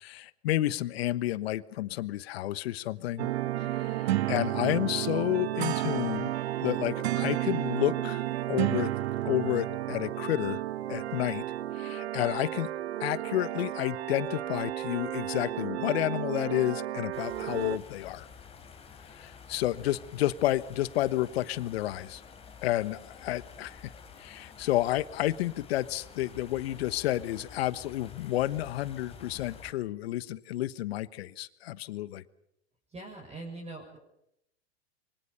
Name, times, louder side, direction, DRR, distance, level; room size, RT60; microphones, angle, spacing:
voice 1, 0.0-3.3 3.7-6.3 6.6-8.9 9.2-10.6 10.9-11.4 11.7-12.7 13.0-18.3 19.1-22.2 22.6-23.9 24.2-32.2, left 15 dB, 65° left, 17 dB, 1.3 m, -30 dB
sound 1, 3.2-17.8, right 14 dB, 70° right, 1.2 m, -32 dB
sound 2, 17.1-29.7, left 6 dB, 15° left, 3.8 m, -50 dB
voice 2, 32.9-34.0, right 2 dB, 20° right, -2 dB, 6.6 m, -42 dB
26.0 x 24.0 x 6.9 m, 0.79 s
hypercardioid pair, 115°, 33 cm